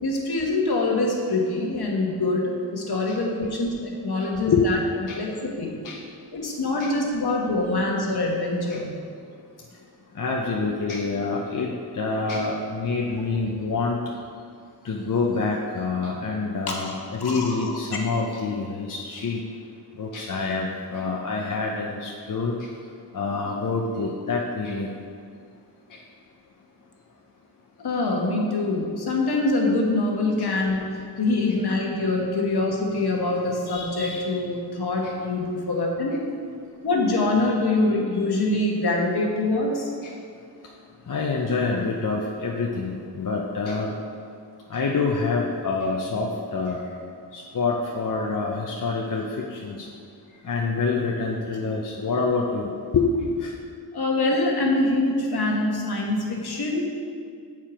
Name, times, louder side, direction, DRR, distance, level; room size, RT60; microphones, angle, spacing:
voice 1, 0.0-4.8 5.1-5.8 6.3-8.9 16.7-16.8 17.2-17.7 27.8-30.8 31.2-36.1 36.8-39.9 53.9-56.9, left 2 dB, 65° left, -1 dB, 1.2 m, -24 dB
voice 2, 10.1-14.0 14.8-19.4 20.0-22.6 23.1-24.9 25.9-26.0 30.4-30.5 35.0-35.1 40.0-40.1 41.1-43.9 44.7-46.8 47.3-49.2 49.5-49.9 50.4-53.0 53.4-53.5, left 4 dB, 50° left, -1 dB, 0.7 m, -26 dB
7.3 x 4.5 x 4.9 m, 2.3 s
wide cardioid pair, 75°, 41 cm